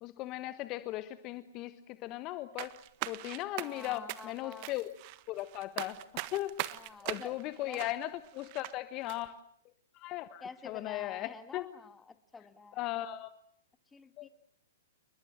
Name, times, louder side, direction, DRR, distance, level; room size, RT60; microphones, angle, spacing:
voice 1, 0.0-2.7 3.1-4.9 5.3-6.0 6.3-6.5 7.0-9.4 9.9-11.6 12.8-13.3 14.2-14.3, left 15 dB, 35° left, 12 dB, 1.3 m, -37 dB
sound 1, 2.6-8.7 9.1-9.2, right 19 dB, 40° right, 1.4 m, -41 dB
voice 2, 3.6-4.7 6.7-7.9 10.4-12.8 13.9-14.3, left 4 dB, 10° left, 10 dB, 2.1 m, -49 dB
29.5 x 21.5 x 7.6 m, 0.67 s
figure-of-eight pair, 115°, 0 cm